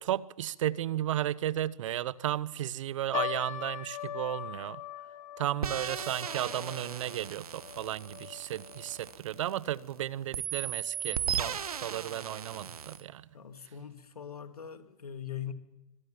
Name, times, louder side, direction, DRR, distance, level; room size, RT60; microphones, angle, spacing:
voice 1, 0.0-4.8 5.4-13.3, right 12 dB, 55° right, 0.9 m, -34 dB
sound 1, 3.1-9.6 9.9-10.0 10.7-11.0 11.6-11.7 12.1-12.2, left 10 dB, 65° left, 2.9 m, -41 dB
sound 2, 5.6-9.9 10.3-13.0, right 7 dB, 80° right, 1.5 m, -37 dB
voice 2, 13.3-15.5, left 9 dB, 85° left, 2.8 m, -41 dB
25.0 x 19.0 x 7.4 m
hypercardioid pair, 125°, 19 cm